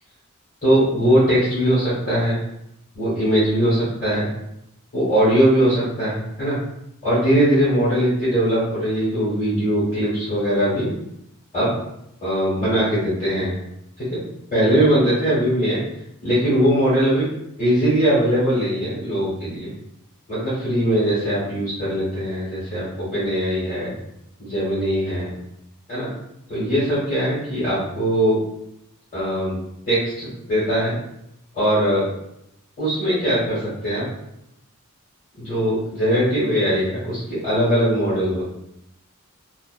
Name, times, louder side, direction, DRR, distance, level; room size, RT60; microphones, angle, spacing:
voice 1, 0.6-2.4 2.9-4.3 4.9-6.6 7.0-10.9 11.5-11.7 12.2-13.5 14.0-14.2 14.5-15.8 16.2-17.3 17.6-19.7 20.3-23.9 24.4-25.3 25.9-26.1 26.5-28.4 29.1-29.6 29.9-30.9 31.5-32.1 32.8-34.0 35.4-38.4, equal, 35° left, -11 dB, 1.1 m, -20 dB
2.4 x 2.1 x 2.4 m, 0.81 s
head